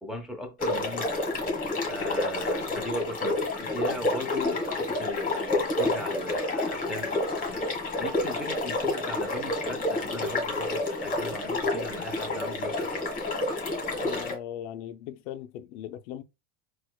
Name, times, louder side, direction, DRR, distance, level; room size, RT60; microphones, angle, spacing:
voice 1, 0.0-1.3 1.9-7.6 8.0-13.0, left 1 dB, ahead, 0.7 m, -38 dB
sound 1, 0.6-14.4, left 2 dB, 25° left, 1.3 m, -29 dB
voice 2, 14.0-16.2, left 11 dB, 80° left, 0.5 m, -39 dB
4.2 x 2.4 x 2.3 m
supercardioid pair, 110°, 34 cm